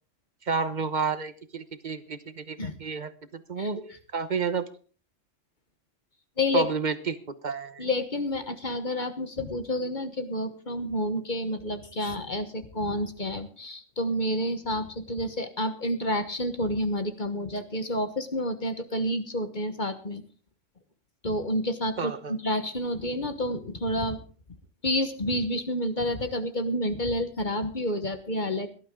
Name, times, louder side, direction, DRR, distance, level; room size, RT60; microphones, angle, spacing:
voice 1, 0.5-4.6 6.5-7.8 22.0-22.3, right 5 dB, 40° right, 12 dB, 1.0 m, -31 dB
voice 2, 6.4-6.7 7.8-20.2 21.2-24.2 24.8-28.7, left 1 dB, 40° left, 8 dB, 1.4 m, -29 dB
18.0 x 12.0 x 3.8 m, 0.39 s
omnidirectional pair, 1.4 m